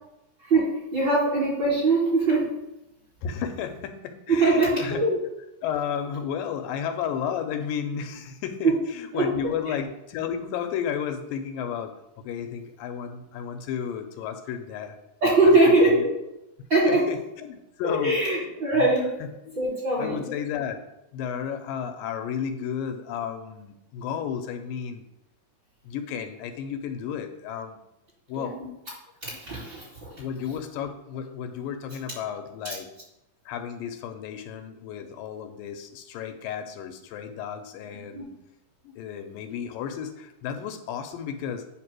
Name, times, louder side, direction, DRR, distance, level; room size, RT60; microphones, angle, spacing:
voice 1, 0.4-2.5 4.3-5.2 8.6-8.7 9.1-9.3 15.2-16.1 16.7-17.0 17.8-19.0 19.6-20.2 28.4-28.7 29.2-30.1 37.9-38.3, right 2 dB, 35° right, -8 dB, 2.5 m, -22 dB
voice 2, 3.2-5.1 5.6-15.0 15.2-16.0 16.9-18.2 18.7-18.9 19.2-19.6 20.0-20.8 21.1-25.0 25.8-27.8 28.3-28.6 30.2-32.9 33.5-38.3 38.8-41.7, left 8 dB, 80° left, 7 dB, 2.3 m, -33 dB
9.4 x 3.2 x 6.0 m, 0.87 s
omnidirectional pair, 4.0 m